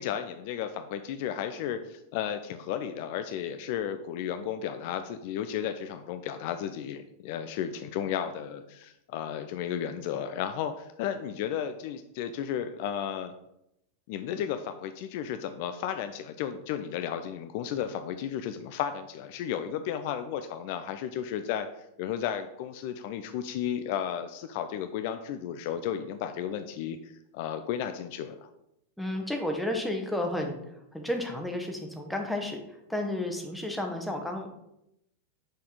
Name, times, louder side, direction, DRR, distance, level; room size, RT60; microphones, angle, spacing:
voice 1, 0.0-13.3 14.1-21.7 22.0-28.5, left 9 dB, 50° left, 9 dB, 0.4 m, -33 dB
voice 2, 29.0-34.6, left 1 dB, ahead, 2 dB, 1.0 m, -32 dB
6.0 x 4.2 x 4.9 m, 0.83 s
figure-of-eight pair, 90°, 0 cm